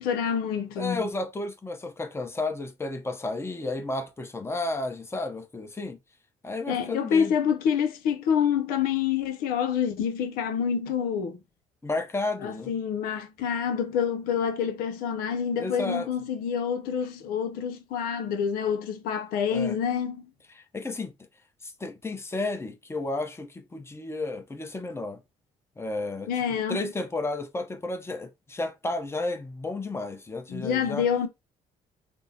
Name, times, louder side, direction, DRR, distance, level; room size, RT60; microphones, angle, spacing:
voice 1, 0.0-1.0 6.7-11.4 12.4-20.2 26.3-26.9 30.5-31.3, left 7 dB, 85° left, 0.6 m, -27 dB
voice 2, 0.8-6.0 6.4-7.4 11.8-12.7 15.6-16.1 19.5-19.8 20.6-21.1 21.6-25.2 25.8-26.3 26.7-31.1, left 2 dB, 15° left, 0.8 m, -32 dB
5.2 x 2.1 x 2.8 m
supercardioid pair, 75°, 15 cm